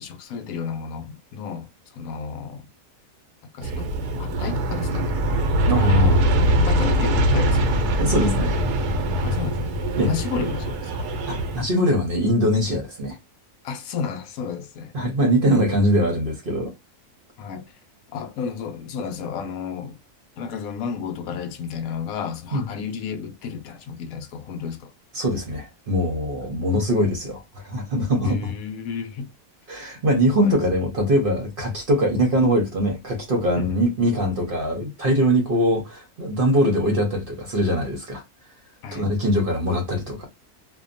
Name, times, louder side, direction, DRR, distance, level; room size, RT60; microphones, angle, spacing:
voice 1, 0.0-1.7 1.9-2.7 3.5-3.9 4.2-5.2 6.7-7.9 9.2-9.7 10.0-11.1 13.6-14.9 17.4-17.6 18.1-20.0 20.4-24.9 26.4-26.5 28.2-29.3 30.3-30.6 32.0-32.2 33.6-33.8 38.8-39.1, left 6 dB, 70° left, 1.0 m, -32 dB
Aircraft, 3.6-11.6, equal, 90° right, 1.2 m, -22 dB
voice 2, 5.7-6.3 8.0-8.6 10.0-10.1 11.3-13.2 14.9-16.7 22.5-22.7 25.1-28.5 29.7-38.2 38.9-40.3, equal, 45° right, 0.8 m, -22 dB
2.7 x 2.2 x 2.5 m
omnidirectional pair, 1.6 m